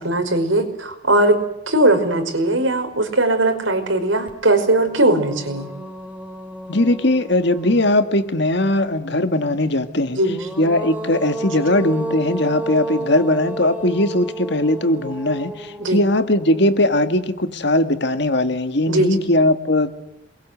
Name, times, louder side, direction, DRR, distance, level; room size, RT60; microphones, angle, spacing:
voice 1, 0.0-1.4 1.7-5.7 10.2-10.4 15.8-16.0 18.9-19.2, right 1 dB, 90° right, 6 dB, 5.2 m, -19 dB
sound 1, 4.3-4.4 4.8-8.4 10.1-17.4, right 2 dB, 5° right, 3.9 m, -32 dB
voice 2, 6.7-10.2 10.6-19.9, left 1 dB, 60° left, 9 dB, 1.9 m, -19 dB
28.0 x 22.5 x 8.1 m, 0.84 s
head